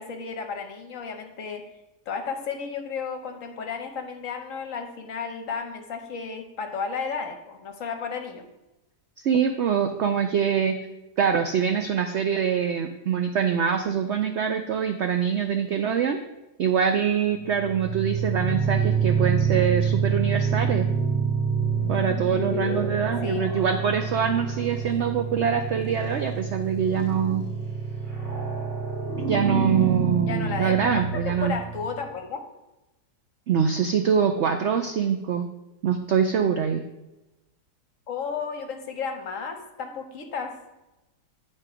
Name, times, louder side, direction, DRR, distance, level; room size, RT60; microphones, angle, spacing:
voice 1, 0.0-1.6 2.1-8.5 23.2-23.5 30.3-30.9 31.3-32.4 38.1-40.5, left 5 dB, 55° left, 5 dB, 1.1 m, -33 dB
voice 2, 9.2-10.8 11.2-16.2 16.6-20.9 21.9-27.4 29.3-31.5 33.5-35.5 35.8-36.8, right 7 dB, 90° right, 6 dB, 0.6 m, -24 dB
sound 1, 17.4-32.0, right 5 dB, 35° right, 1.7 m, -27 dB
9.6 x 4.5 x 4.8 m, 0.99 s
omnidirectional pair, 1.8 m